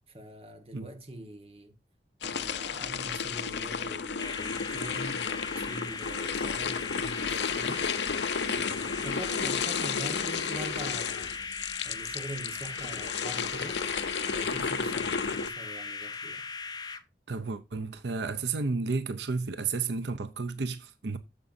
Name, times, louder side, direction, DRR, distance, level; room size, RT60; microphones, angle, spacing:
voice 1, 0.1-1.7 2.2-7.9 8.5-11.3 11.8-13.8 14.3-16.4, right 1 dB, 35° right, 1.5 m, -43 dB
sound 1, 2.2-15.5, left 6 dB, 80° left, 0.6 m, -32 dB
sound 2, 4.2-17.0, left 4 dB, 20° left, 0.7 m, -39 dB
voice 2, 17.3-21.2, right 4 dB, 85° right, 0.7 m, -32 dB
8.9 x 7.1 x 2.7 m
head